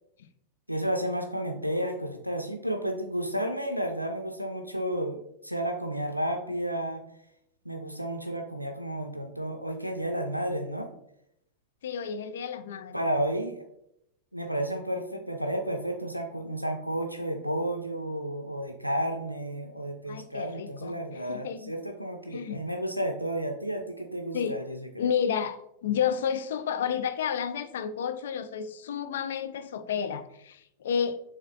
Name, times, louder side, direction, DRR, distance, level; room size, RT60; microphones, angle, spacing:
voice 1, 0.7-7.0 7.7-10.9 12.9-13.6 14.3-25.1, right 1 dB, 90° right, 0.4 m, -32 dB
voice 2, 11.8-13.0 20.1-21.8 22.3-22.6 24.3-24.6 25.0-31.2, left 7 dB, 60° left, 0.4 m, -31 dB
6.3 x 3.4 x 2.3 m
figure-of-eight pair, 90°, 0 cm